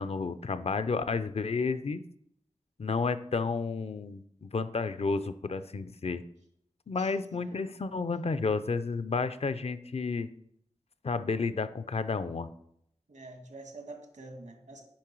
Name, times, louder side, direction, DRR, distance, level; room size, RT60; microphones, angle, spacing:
voice 1, 0.0-2.0 2.8-6.2 6.9-10.3 11.0-12.5, left 4 dB, 55° left, 12 dB, 0.5 m, -31 dB
voice 2, 7.0-7.5 13.1-14.8, right 2 dB, 85° right, 3 dB, 1.6 m, -47 dB
8.6 x 5.5 x 4.6 m, 0.73 s
wide cardioid pair, 80°, 12 cm